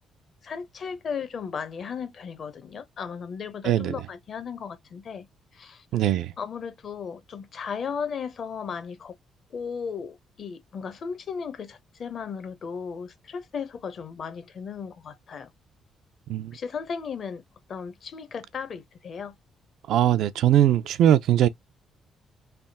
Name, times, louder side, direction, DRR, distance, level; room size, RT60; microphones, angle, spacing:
voice 1, 0.4-5.3 5.5-5.8 6.4-9.1 9.5-15.5 16.5-17.4 17.7-19.3, left 6 dB, 55° left, 0.8 m, -35 dB
voice 2, 5.9-6.3 16.3-16.5 19.9-21.5, right 11 dB, 80° right, 0.4 m, -20 dB
3.4 x 2.2 x 4.1 m
cardioid pair, 90°, 0 cm